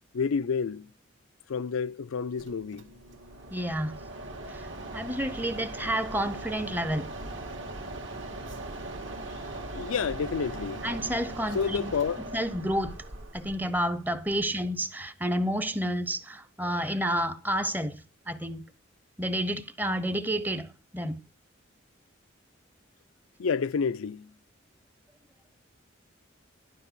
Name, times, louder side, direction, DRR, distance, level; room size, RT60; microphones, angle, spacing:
voice 1, 0.1-0.9 1.5-2.9 9.7-10.9 11.5-12.2 23.4-24.3, left 6 dB, 85° left, 0.4 m, -29 dB
Mechanisms, 2.4-14.8, right 2 dB, 65° right, 1.9 m, -40 dB
voice 2, 3.5-4.0 4.5-7.1 10.8-11.9 12.2-13.0 13.3-18.6 19.2-21.2, equal, 10° right, 0.7 m, -30 dB
12.0 x 5.3 x 6.8 m
head